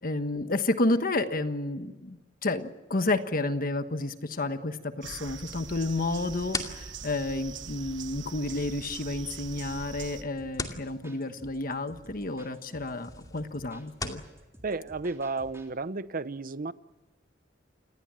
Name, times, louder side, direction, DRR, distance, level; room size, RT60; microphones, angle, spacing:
voice 1, 0.0-14.2, left 2 dB, 50° left, 9 dB, 1.3 m, -31 dB
sound 1, 5.0-10.2, right 5 dB, 70° right, 1.4 m, -42 dB
sound 2, 6.0-14.3, left 3 dB, 20° left, 2.4 m, -42 dB
sound 3, 10.4-15.7, right 1 dB, 15° right, 3.6 m, -53 dB
voice 2, 14.6-16.7, right 3 dB, 50° right, 15 dB, 0.8 m, -33 dB
28.5 x 19.5 x 7.6 m, 1.1 s
head